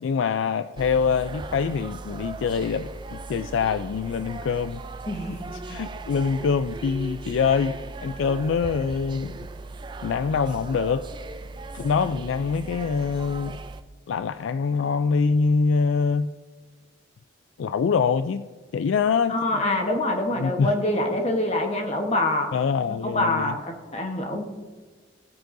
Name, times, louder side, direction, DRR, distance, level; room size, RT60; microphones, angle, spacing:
voice 1, 0.0-4.8 5.7-7.8 8.0-9.4 10.0-11.0 11.7-13.6 14.1-16.3 17.6-18.5 18.7-19.6 20.4-20.7 22.5-23.5, left 5 dB, 75° left, 11 dB, 0.3 m, -24 dB
sound 1, 0.8-13.8, right 3 dB, 25° right, 0.3 m, -38 dB
voice 2, 5.1-5.4 5.7-5.8 19.3-22.5 23.0-24.4, left 1 dB, 30° left, 3 dB, 1.1 m, -25 dB
16.0 x 9.2 x 2.6 m, 1.4 s
head